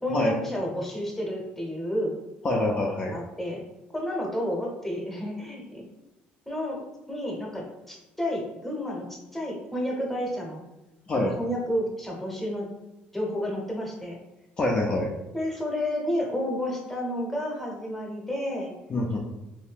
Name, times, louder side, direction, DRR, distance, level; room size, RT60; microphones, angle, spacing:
voice 1, 0.0-2.1 3.0-3.6 3.9-5.8 6.5-10.6 11.3-12.7 13.1-14.2 15.3-18.7, equal, 5° left, -1 dB, 0.9 m, -31 dB
voice 2, 2.4-3.1 11.1-11.3 14.6-15.1 18.9-19.2, left 1 dB, 30° left, -2 dB, 0.4 m, -25 dB
2.7 x 2.6 x 3.4 m, 0.99 s
cardioid pair, 110°, 4 cm